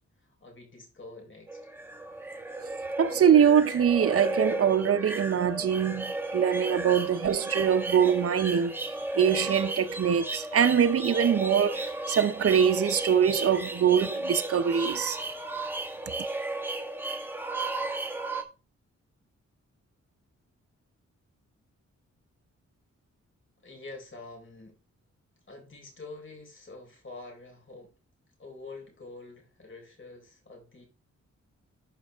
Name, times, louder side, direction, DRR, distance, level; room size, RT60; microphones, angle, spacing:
voice 1, 0.2-1.7 23.6-24.8 25.5-27.9 28.4-30.9, left 3 dB, 45° left, 4.1 m, -46 dB
sound 1, 1.5-18.4, right 2 dB, 5° right, 1.4 m, -34 dB
voice 2, 3.0-8.7 9.2-15.2, right 8 dB, 50° right, 0.7 m, -23 dB
12.0 x 5.3 x 3.5 m
wide cardioid pair, 95°, 29 cm